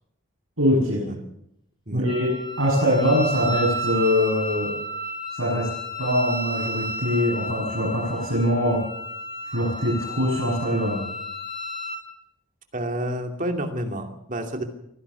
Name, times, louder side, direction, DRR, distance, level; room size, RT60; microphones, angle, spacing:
voice 1, 0.6-1.1 1.9-4.7 5.3-5.7 6.0-8.8 9.5-11.0, equal, 80° right, -6 dB, 7.8 m, -23 dB
Wind instrument woodwind instrument, 2.1-12.0, equal, 20° left, 5.6 m, -32 dB
voice 2, 12.7-14.6, right 1 dB, 40° right, 4 dB, 2.6 m, -29 dB
24.0 x 16.0 x 7.0 m, 0.79 s
head